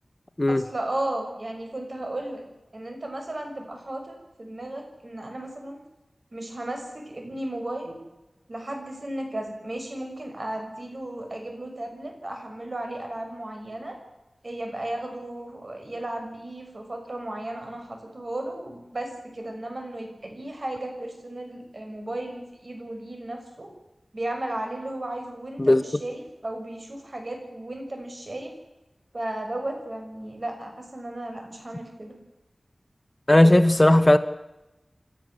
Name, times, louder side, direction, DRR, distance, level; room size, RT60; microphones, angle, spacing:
voice 1, 0.5-2.4 2.7-5.8 6.3-8.0 8.5-14.0 14.4-23.7 24.1-28.5 29.1-32.2, right 1 dB, 55° right, 6.1 m, -34 dB
voice 2, 33.3-34.2, left 1 dB, 30° left, 1.2 m, -16 dB
28.5 x 13.0 x 7.8 m
wide cardioid pair, 50°, 0 cm